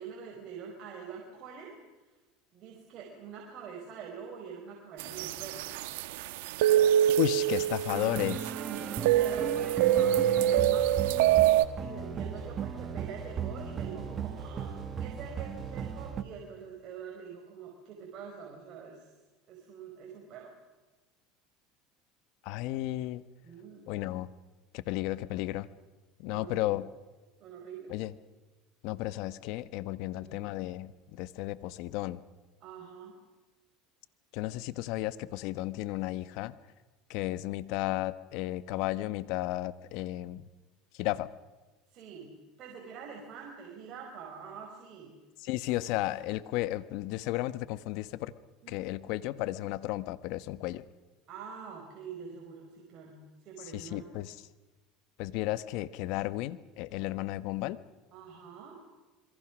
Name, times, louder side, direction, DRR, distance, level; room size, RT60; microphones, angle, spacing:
voice 1, 0.0-1.8 2.5-5.7 8.6-11.0 11.8-19.1 19.5-20.5 23.4-23.9 26.2-26.8 27.4-27.9 30.0-30.5 32.6-33.2 41.9-45.1 48.6-49.1 51.3-54.2 58.1-58.8, right 6 dB, 50° right, 0 dB, 5.1 m, -45 dB
sound 1, 5.0-11.7, right 11 dB, 80° right, 1.3 m, -26 dB
voice 2, 7.2-8.5 22.4-23.2 23.9-24.3 24.7-25.7 26.2-26.9 27.9-28.1 28.8-32.2 34.3-36.6 37.1-40.4 40.9-41.3 45.4-48.3 48.7-50.8 53.7-54.3 55.2-57.8, left 16 dB, 65° left, 15 dB, 1.1 m, -33 dB
sound 2, 7.9-16.2, right 8 dB, 35° right, 1.9 m, -37 dB
sound 3, 9.1-16.1, left 5 dB, 20° left, 7.0 m, -50 dB
27.5 x 23.0 x 6.3 m, 1.2 s
supercardioid pair, 115°, 0 cm